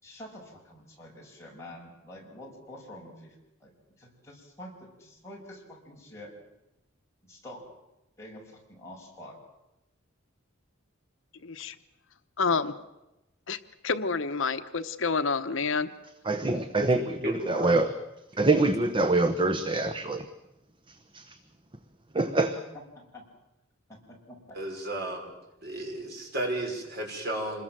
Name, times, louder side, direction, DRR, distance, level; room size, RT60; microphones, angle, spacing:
voice 1, 0.0-3.3 3.6-6.4 7.2-7.7 8.2-9.4 22.4-22.5 22.9-23.3 23.9-24.6, left 1 dB, 15° left, -2 dB, 6.3 m, -47 dB
voice 2, 11.4-11.7 12.4-12.7 13.5-13.6 13.8-15.9, left 4 dB, 70° left, 10 dB, 1.0 m, -28 dB
voice 3, 16.2-17.9 18.4-20.3 21.1-21.4 22.1-22.5, right 2 dB, 25° right, 8 dB, 1.0 m, -25 dB
voice 4, 16.8-17.8 18.5-18.6 24.5-25.3 25.6-27.6, right 1 dB, 50° right, 1 dB, 6.0 m, -34 dB
26.5 x 21.5 x 7.6 m, 0.96 s
head